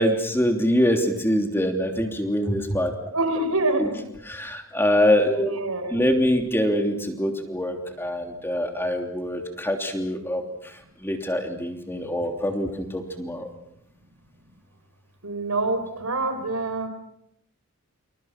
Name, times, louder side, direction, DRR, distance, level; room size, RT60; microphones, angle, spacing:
voice 1, 0.0-2.9 3.8-3.9 4.3-5.5 5.9-13.5, equal, 10° left, 4 dB, 3.1 m, -24 dB
voice 2, 3.1-4.1 5.4-6.0 15.2-16.9, right 2 dB, 85° right, 8 dB, 4.6 m, -26 dB
29.5 x 27.5 x 6.0 m, 0.74 s
head